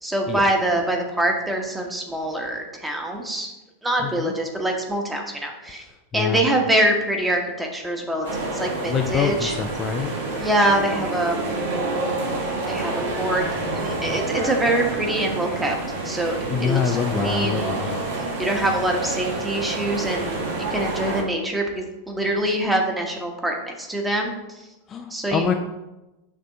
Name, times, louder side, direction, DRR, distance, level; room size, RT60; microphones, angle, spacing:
voice 1, 0.0-3.5 3.8-5.8 6.1-8.3 8.5-9.5 10.4-11.4 12.7-12.9 13.2-13.4 13.7-15.7 16.0-17.7 18.4-24.3 25.1-25.4, right 1 dB, 5° right, 1 dB, 1.2 m, -24 dB
voice 2, 4.0-4.3 5.8-5.9 6.1-6.5 8.9-10.1 16.5-17.9 24.9-25.5, left 7 dB, 25° left, 4 dB, 0.5 m, -25 dB
sound 1, 8.2-21.2, right 2 dB, 55° right, 1.5 m, -28 dB
6.7 x 3.6 x 5.3 m, 1.0 s
figure-of-eight pair, 90°, 0 cm